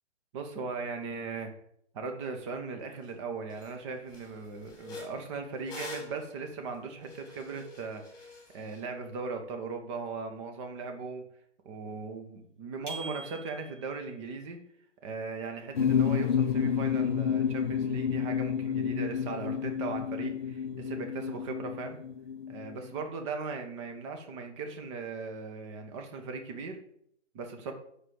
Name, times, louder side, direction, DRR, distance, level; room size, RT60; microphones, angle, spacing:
voice 1, 0.3-1.5 1.9-8.0 8.5-11.2 11.6-14.6 15.0-22.0 22.5-26.8 27.3-27.7, right 4 dB, 25° right, 5 dB, 1.4 m, -38 dB
sound 1, 3.0-3.1 3.5-3.7 4.1-8.8, left 2 dB, 10° left, 3.6 m, -46 dB
sound 2, 12.9-14.0, right 3 dB, 80° right, 3.3 m, -42 dB
sound 3, 15.7-23.0, left 7 dB, 45° left, 0.6 m, -30 dB
8.1 x 6.6 x 7.9 m, 0.71 s
figure-of-eight pair, 130°, 36 cm